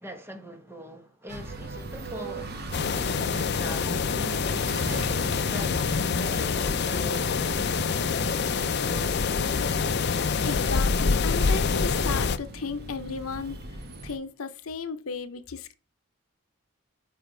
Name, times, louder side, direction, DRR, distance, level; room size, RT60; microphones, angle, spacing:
voice 1, 0.0-7.7, equal, 10° right, 1.3 m, -42 dB
sound 1, 1.3-14.2, right 2 dB, 45° right, 1.5 m, -39 dB
sound 2, 2.7-12.4, left 5 dB, 50° left, 0.5 m, -26 dB
voice 2, 10.4-13.8 14.0-15.8, left 5 dB, 80° left, 0.8 m, -34 dB
9.2 x 6.1 x 3.3 m
head